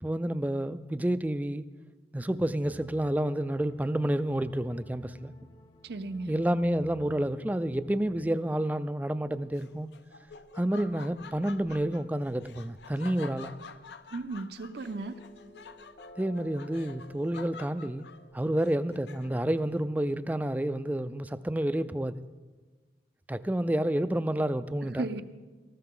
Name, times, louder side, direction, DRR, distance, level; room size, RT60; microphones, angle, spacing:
voice 1, 0.0-1.6 2.1-5.3 6.3-9.9 10.5-13.6 16.2-18.1 18.3-22.2 23.3-25.1, right 1 dB, 10° right, 0.3 m, -29 dB
sound 1, 2.6-8.3, left 1 dB, 20° left, 0.7 m, -54 dB
voice 2, 5.8-6.3 14.1-15.2 24.8-25.2, right 3 dB, 65° right, 0.6 m, -35 dB
Laughter, 9.5-19.6, left 5 dB, 75° left, 0.6 m, -49 dB
sound 2, 14.8-19.9, equal, 50° left, 1.3 m, -54 dB
19.0 x 14.5 x 3.8 m
head